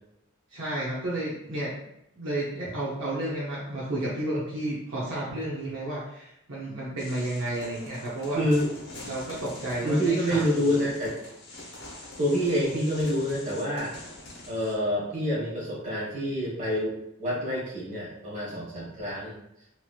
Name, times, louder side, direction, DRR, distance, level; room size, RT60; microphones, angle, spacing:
voice 1, 0.5-1.7 2.1-8.4 9.0-10.9, right 1 dB, 60° right, -7 dB, 0.7 m, -32 dB
sound 1, 7.0-14.7, left 2 dB, 50° left, 0.8 m, -44 dB
voice 2, 8.3-8.7 9.8-11.1 12.2-13.9 14.5-19.4, equal, 35° right, -6 dB, 1.2 m, -27 dB
3.0 x 2.9 x 2.3 m, 0.80 s
head